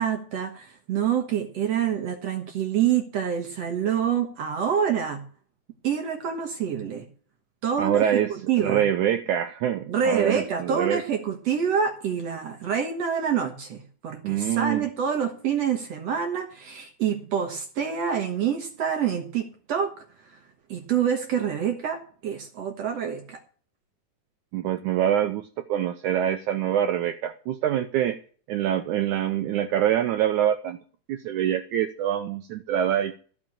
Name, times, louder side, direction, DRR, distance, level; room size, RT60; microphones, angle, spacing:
voice 1, 0.0-5.2 5.8-7.1 7.6-8.8 9.9-19.9 20.7-23.4, right 8 dB, 60° right, 4 dB, 1.9 m, -27 dB
voice 2, 7.8-8.3 8.6-11.0 14.2-14.9 24.5-28.2 28.5-30.8 31.1-33.2, right 10 dB, 80° right, 8 dB, 1.8 m, -25 dB
14.0 x 6.1 x 8.6 m, 0.43 s
omnidirectional pair, 4.2 m